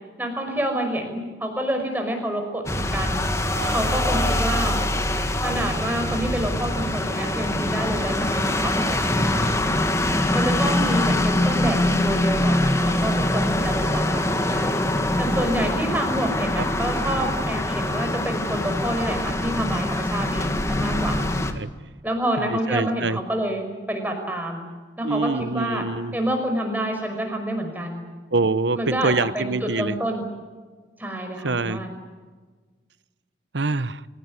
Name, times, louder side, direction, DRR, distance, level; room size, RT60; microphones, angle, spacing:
voice 1, 0.2-3.3 3.7-4.8 5.4-9.5 10.3-14.8 15.2-21.2 22.0-24.6 25.0-25.8 26.1-28.1 28.8-30.3 31.0-32.0, right 1 dB, 10° right, 4 dB, 5.6 m, -28 dB
sound 1, 2.7-21.5, left 1 dB, 15° left, 1.8 m, -23 dB
voice 2, 3.5-4.7 8.9-9.0 15.6-15.7 16.6-16.7 21.5-22.0 22.4-23.2 25.0-26.2 28.3-30.0 31.4-31.8 33.5-34.1, right 3 dB, 75° right, 15 dB, 1.0 m, -26 dB
29.5 x 17.0 x 9.8 m, 1.4 s
head